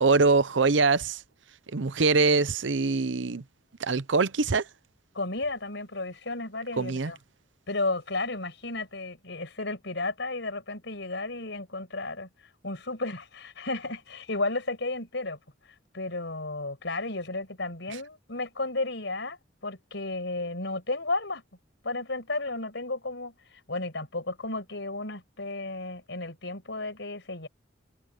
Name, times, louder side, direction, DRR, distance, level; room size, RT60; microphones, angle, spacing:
voice 1, 0.0-1.2 1.7-3.4 3.8-4.7 6.8-7.1, right 4 dB, 75° right, 0.8 m, -23 dB
voice 2, 5.1-7.2 7.7-12.3 12.6-15.4 15.6-21.4 21.8-27.5, left 2 dB, 70° left, 6.5 m, -33 dB
head